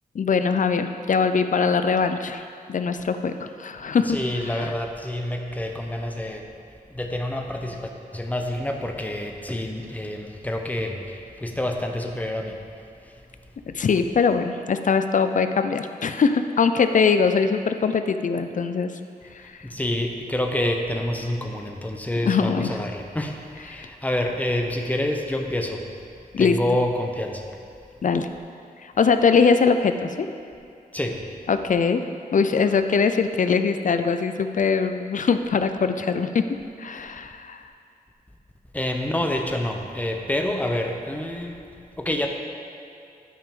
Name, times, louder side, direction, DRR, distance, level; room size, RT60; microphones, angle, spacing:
voice 1, 0.1-2.4 2.7-3.3 3.6-4.2 4.4-4.7 13.7-18.9 22.2-22.7 23.7-23.9 26.3-26.6 28.0-28.3 28.8-30.3 31.5-32.0 32.3-36.4 36.8-37.6, left 5 dB, 55° left, 9 dB, 0.5 m, -22 dB
voice 2, 4.1-6.4 6.9-12.6 19.6-25.8 26.4-27.4 30.9-31.2 38.7-41.6 42.0-42.3, left 1 dB, 10° left, 3 dB, 0.8 m, -27 dB
12.0 x 5.1 x 3.7 m, 2.6 s
wide cardioid pair, 90°, 16 cm